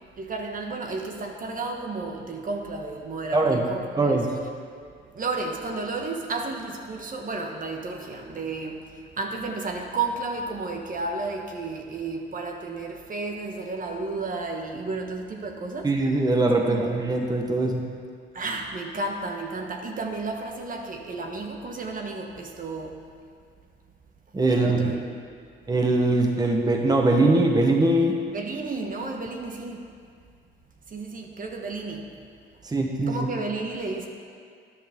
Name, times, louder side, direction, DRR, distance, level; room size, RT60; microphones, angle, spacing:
voice 1, 0.2-3.8 5.1-8.8 9.2-15.9 16.6-16.9 18.3-22.9 24.5-25.0 28.3-29.9 30.9-32.1 33.1-34.1, right 3 dB, 45° right, 2 dB, 1.3 m, -32 dB
voice 2, 3.3-3.6 4.0-4.3 15.8-17.8 24.3-24.9 25.7-28.2 32.6-33.3, right 2 dB, 20° right, 1 dB, 1.2 m, -22 dB
13.0 x 10.5 x 3.7 m, 2.2 s
cardioid pair, 90°, 20 cm